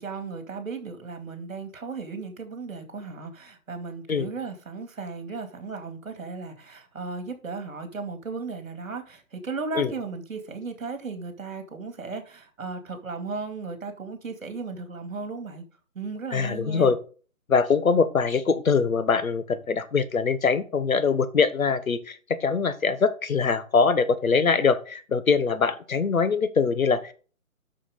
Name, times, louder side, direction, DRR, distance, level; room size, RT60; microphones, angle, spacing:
voice 1, 0.0-15.6 15.9-16.9, right 4 dB, 65° right, 2.5 m, -36 dB
voice 2, 16.3-17.0 17.5-27.1, left 5 dB, 70° left, 1.2 m, -23 dB
7.8 x 6.3 x 5.0 m
hypercardioid pair, 175°, 43 cm